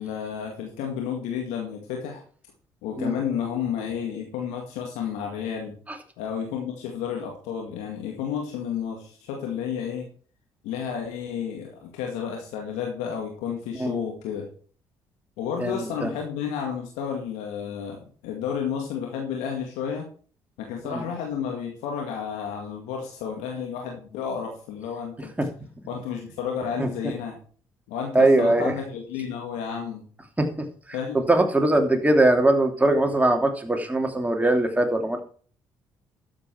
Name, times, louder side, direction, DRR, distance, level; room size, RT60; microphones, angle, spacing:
voice 1, 0.0-2.2 2.8-5.8 6.2-10.1 10.6-14.5 15.4-20.1 20.6-25.3 25.9-27.4 27.9-30.1 30.9-31.2, left 7 dB, 80° left, 1 dB, 2.1 m, -31 dB
voice 2, 15.6-16.1 20.9-21.0 25.4-25.5 26.8-27.1 28.1-28.7 30.4-30.7 31.1-35.2, right 2 dB, 10° right, 4 dB, 2.9 m, -21 dB
12.0 x 7.6 x 4.6 m, 0.43 s
hypercardioid pair, 50°, 12 cm